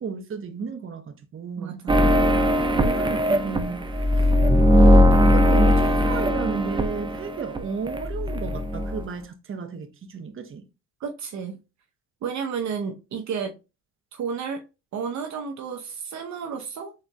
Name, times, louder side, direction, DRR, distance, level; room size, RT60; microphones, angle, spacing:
voice 1, 0.0-1.8 2.7-4.3 4.7-10.7, right 5 dB, 45° right, 1.0 m, -33 dB
voice 2, 1.6-2.0 11.0-11.6 12.2-13.6 14.1-14.6 14.9-16.9, right 6 dB, 65° right, 0.8 m, -31 dB
sound 1, 1.9-7.6 7.9-9.0, left 1 dB, 15° right, 0.5 m, -19 dB
4.4 x 3.8 x 2.2 m
cardioid pair, 90°, 30 cm